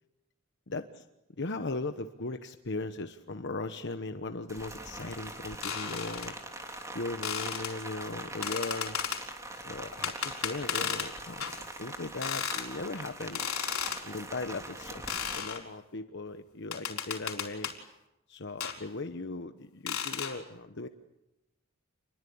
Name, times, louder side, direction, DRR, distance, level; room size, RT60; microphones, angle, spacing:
voice 1, 0.7-1.0 1.4-6.3 6.9-9.0 9.5-11.5 11.8-13.5 14.0-14.9 15.3-17.7 18.3-20.9, left 3 dB, 55° left, 8 dB, 1.1 m, -38 dB
Rain, 4.5-15.4, right 1 dB, 15° right, 3.2 m, -43 dB
sound 1, 5.6-6.3 7.2-7.7 8.4-9.2 10.0-11.1 11.4-11.6 12.2-12.7 13.4-14.0 15.1-15.6 16.7-17.8 18.6-18.8 19.9-20.4, left 8 dB, 90° left, 4.4 m, -34 dB
28.5 x 22.0 x 8.7 m, 0.94 s
head